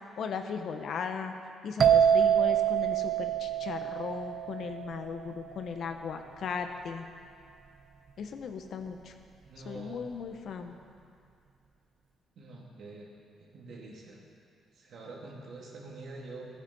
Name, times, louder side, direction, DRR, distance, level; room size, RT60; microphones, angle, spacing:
voice 1, 0.2-1.3 1.6-7.1 8.2-9.1 9.6-10.8, left 6 dB, 65° left, 6 dB, 1.0 m, -37 dB
sound 1, 1.8-5.4, right 9 dB, 50° right, 0.7 m, -26 dB
voice 2, 9.4-10.1 12.4-13.1 13.5-14.2 14.8-16.5, right 2 dB, 65° right, -2 dB, 2.7 m, -45 dB
15.0 x 9.4 x 5.6 m, 2.5 s
cardioid pair, 90°, 0 cm